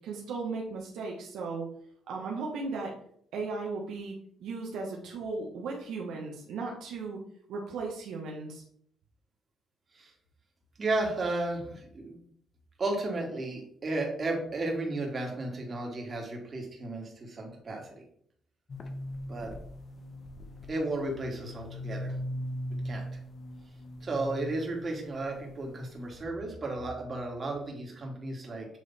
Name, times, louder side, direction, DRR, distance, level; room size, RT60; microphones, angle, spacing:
voice 1, 0.0-1.7 2.1-2.9 3.3-7.2 7.5-8.6, right 4 dB, 80° right, -1 dB, 1.2 m, -36 dB
voice 2, 10.8-12.2 12.8-18.0 19.3-19.5 20.7-22.2 22.8-23.0 24.0-28.7, right 2 dB, 40° right, 0 dB, 2.0 m, -34 dB
sound 1, 18.7-26.2, equal, 45° left, 1.0 m, -40 dB
7.7 x 3.2 x 4.2 m, 0.64 s
cardioid pair, 90°, 0 cm